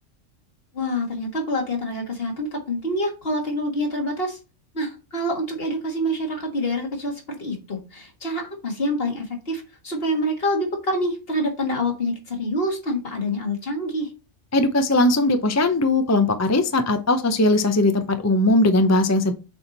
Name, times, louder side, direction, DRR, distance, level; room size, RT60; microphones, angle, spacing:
voice 1, 0.7-4.4 4.7-14.1, equal, 50° left, 2 dB, 1.9 m, -26 dB
voice 2, 14.5-19.3, left 2 dB, 20° left, 8 dB, 0.4 m, -19 dB
7.0 x 4.4 x 4.0 m, 0.31 s
omnidirectional pair, 1.3 m